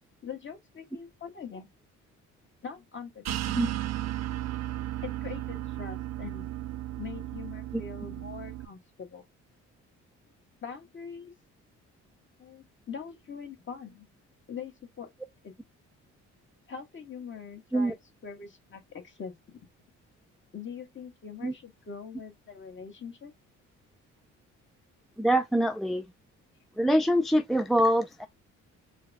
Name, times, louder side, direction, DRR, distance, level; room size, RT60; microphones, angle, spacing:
voice 1, 0.2-1.7 2.6-3.7 5.0-6.5 7.0-9.2 10.6-11.3 12.4-14.1 14.5-15.1 15.4-15.5 16.7-19.7 20.5-23.3, left 6 dB, 40° left, 1.6 m, -43 dB
sound 1, 3.2-8.6, right 14 dB, 60° right, 0.5 m, -35 dB
voice 2, 25.2-26.1 26.8-28.3, equal, ahead, 0.4 m, -24 dB
4.5 x 2.3 x 3.4 m
cardioid pair, 90°, 30 cm